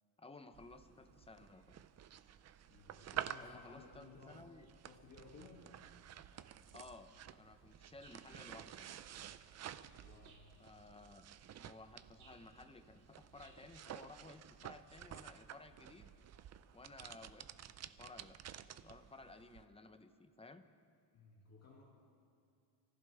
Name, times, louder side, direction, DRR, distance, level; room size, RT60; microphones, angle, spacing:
voice 1, 0.2-1.9 3.4-4.7 6.7-9.3 10.6-11.3 11.6-16.1 16.7-18.4 18.8-20.6, left 3 dB, 10° left, 8 dB, 0.7 m, -57 dB
sound 1, 0.5-19.6, right 10 dB, 35° right, 0.5 m, -51 dB
voice 2, 2.7-4.4 4.8-5.8 9.9-10.4 21.1-21.8, left 4 dB, 30° left, -3 dB, 2.3 m, -59 dB
sound 2, 5.0-13.5, right 4 dB, 50° right, 3.4 m, -68 dB
27.5 x 15.5 x 3.4 m, 2.4 s
cardioid pair, 135°, 49 cm